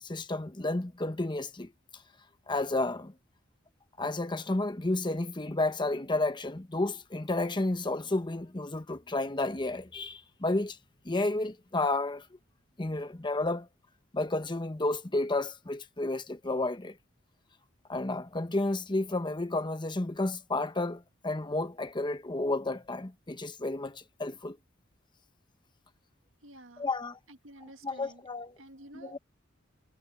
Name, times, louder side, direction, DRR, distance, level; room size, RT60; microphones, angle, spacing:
voice 1, 0.0-1.7 2.5-3.1 4.0-10.8 11.0-12.3 12.8-13.7 14.1-17.0 17.9-24.6 26.8-27.2 27.8-28.6 28.9-29.2, left 2 dB, 25° left, 1.0 m, -31 dB
voice 2, 26.4-26.8 27.4-28.2 28.6-29.2, right 1 dB, 75° right, 1.8 m, -50 dB
head